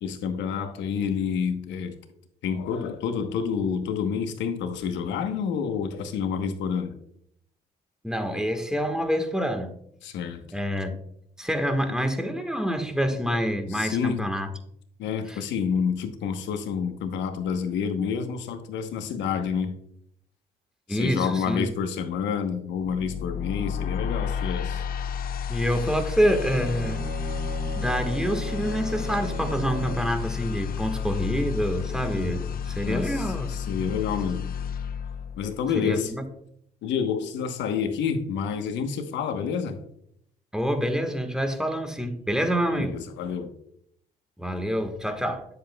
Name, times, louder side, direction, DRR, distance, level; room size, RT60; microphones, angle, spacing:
voice 1, 0.0-1.9 2.4-6.9 10.0-10.4 13.7-14.2 15.0-19.7 20.9-24.8 32.2-32.4 32.8-34.5 35.4-36.1 36.8-39.8 42.7-43.5, left 6 dB, 75° left, 7 dB, 1.0 m, -28 dB
voice 2, 8.0-9.7 10.5-10.9 11.4-14.5 15.3-15.4 20.9-21.7 25.5-27.0 27.8-33.9 35.8-36.2 40.5-42.9 44.4-45.5, equal, 5° right, 6 dB, 1.4 m, -27 dB
sound 1, 22.8-35.9, left 7 dB, 50° left, 0.5 m, -31 dB
Bowed string instrument, 26.3-30.2, right 5 dB, 60° right, 2.5 m, -37 dB
9.5 x 7.8 x 2.3 m, 0.72 s
supercardioid pair, 65°, 19 cm